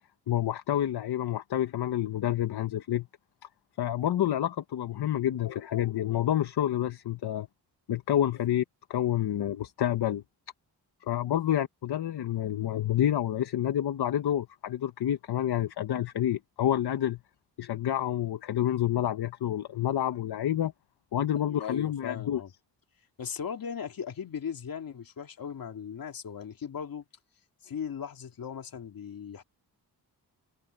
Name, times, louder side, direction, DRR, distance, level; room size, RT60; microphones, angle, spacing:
voice 1, 0.3-3.1 3.8-7.5 7.9-8.6 8.9-10.2 11.0-17.2 17.6-20.7 21.1-22.4, left 11 dB, 75° left, 1.2 m, -28 dB
voice 2, 21.5-22.5 23.2-27.0 27.6-29.4, left 7 dB, 60° left, 2.8 m, -38 dB
wide cardioid pair, 135°, 39 cm